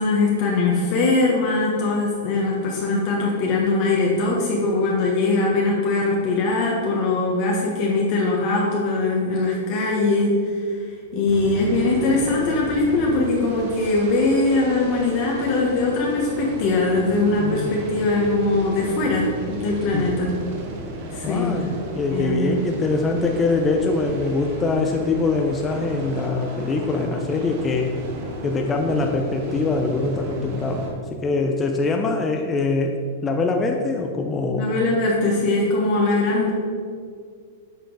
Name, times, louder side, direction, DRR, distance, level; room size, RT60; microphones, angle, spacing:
voice 1, 0.0-10.8 11.1-20.3 21.1-21.7 22.1-22.4 34.5-36.5, left 2 dB, 45° left, -3 dB, 1.2 m, -21 dB
sound 1, 11.3-30.9, right 1 dB, 50° right, 1.4 m, -35 dB
voice 2, 17.4-17.8 19.9-20.1 21.2-28.0 28.4-30.8 31.1-32.9 33.2-34.7, left 3 dB, 20° left, 2 dB, 0.5 m, -23 dB
8.0 x 4.4 x 4.0 m, 2.2 s
hypercardioid pair, 130°, 0 cm